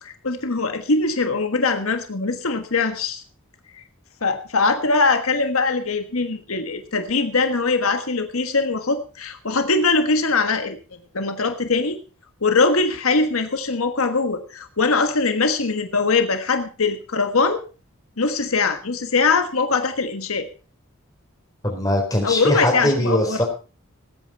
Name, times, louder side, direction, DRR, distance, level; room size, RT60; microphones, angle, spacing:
voice 1, 0.0-3.2 4.2-10.8 11.1-12.0 12.4-17.6 18.2-20.5 22.2-23.4, left 4 dB, 85° left, 7 dB, 1.4 m, -22 dB
voice 2, 21.6-23.4, left 1 dB, 15° left, 1 dB, 4.1 m, -21 dB
20.0 x 8.8 x 4.2 m, 0.34 s
head